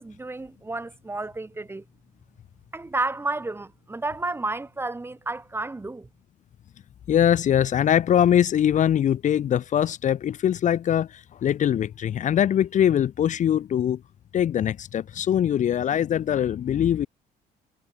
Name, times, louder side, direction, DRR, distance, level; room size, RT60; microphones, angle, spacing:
voice 1, 0.0-1.8 2.7-6.1, right 2 dB, 15° right, 1.5 m, -31 dB
voice 2, 7.1-14.0 14.3-17.1, left 10 dB, 45° left, 0.9 m, -22 dB
cardioid pair, 110°, 17 cm